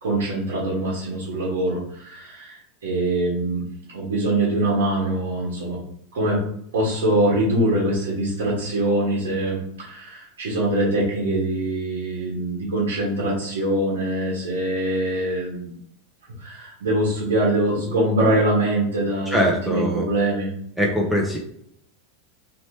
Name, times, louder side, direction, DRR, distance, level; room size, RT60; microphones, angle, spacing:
voice 1, 0.0-3.6 3.9-5.8 6.1-6.4 6.7-15.7 16.4-19.4 19.7-20.5, right 1 dB, 85° right, -5 dB, 1.4 m, -23 dB
voice 2, 19.3-20.1 20.8-21.4, equal, ahead, -3 dB, 0.8 m, -22 dB
3.2 x 3.1 x 2.9 m, 0.71 s
hypercardioid pair, 110°, 0 cm